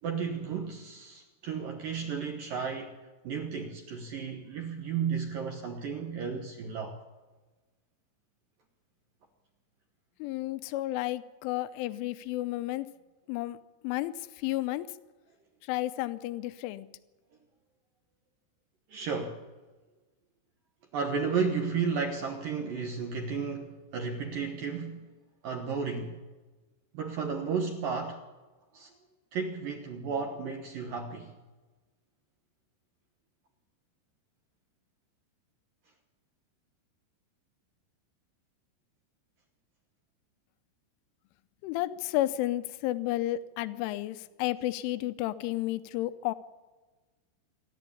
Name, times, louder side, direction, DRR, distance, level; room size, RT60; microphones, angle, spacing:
voice 1, 0.0-3.0 3.2-7.0 18.9-19.4 20.9-25.1 25.4-26.2 26.9-28.2 28.7-28.9 29.3-31.3, right 5 dB, 65° right, 2.3 m, -33 dB
voice 2, 10.2-12.9 13.3-13.6 13.8-15.0 15.6-16.9 41.6-46.3, left 15 dB, 85° left, 3.2 m, -32 dB
27.5 x 11.5 x 8.5 m
omnidirectional pair, 5.6 m